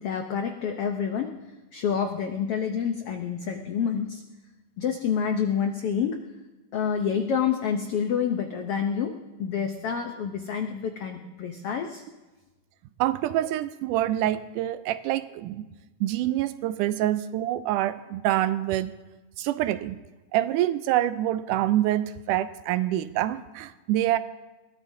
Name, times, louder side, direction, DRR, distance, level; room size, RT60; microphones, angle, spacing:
voice 1, 0.0-1.3 1.7-4.2 4.8-6.2 6.7-9.1 9.4-12.0, left 7 dB, 80° left, 4 dB, 1.3 m, -28 dB
voice 2, 13.0-15.7 16.0-18.9 19.4-20.0 20.3-24.2, right 13 dB, 80° right, 13 dB, 2.1 m, -26 dB
22.0 x 18.0 x 2.7 m, 1.1 s
omnidirectional pair, 3.7 m